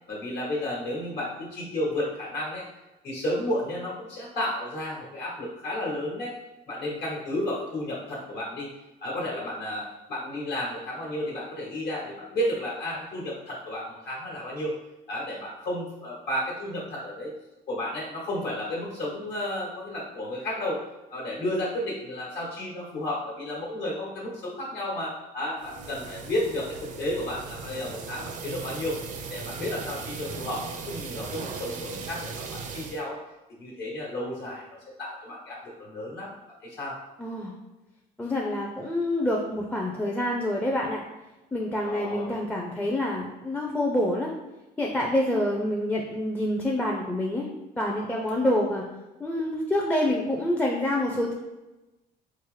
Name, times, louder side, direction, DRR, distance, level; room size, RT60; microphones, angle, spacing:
voice 1, 0.1-2.7 3.0-6.3 6.7-8.7 9.0-14.7 15.1-17.3 17.7-20.8 21.1-29.0 29.3-33.2 33.6-34.6 35.0-36.3 36.6-37.0 41.8-42.3, left 1 dB, 70° left, -4 dB, 1.2 m, -32 dB
sound 1, 25.6-33.0, right 5 dB, 50° right, 0.4 m, -38 dB
voice 2, 37.2-37.5 38.2-41.0 41.5-44.3 44.8-47.5 47.8-48.9 49.2-51.3, left 1 dB, 10° left, -1 dB, 0.4 m, -27 dB
4.6 x 2.0 x 3.1 m, 1.0 s
cardioid pair, 110°, 17 cm